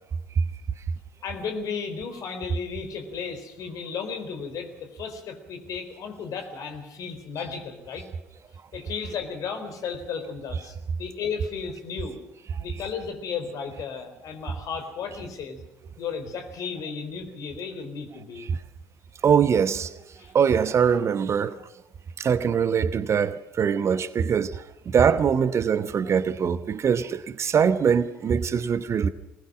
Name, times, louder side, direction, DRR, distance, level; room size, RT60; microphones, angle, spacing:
voice 1, 1.2-8.1 8.7-12.2 12.6-15.6 16.0-18.5 20.2-20.3, left 6 dB, 50° left, 4.0 m, -34 dB
voice 2, 19.2-19.9 20.3-21.7 22.2-29.1, right 7 dB, 35° right, 1.0 m, -22 dB
23.5 x 20.0 x 6.2 m
figure-of-eight pair, 55°, 8 cm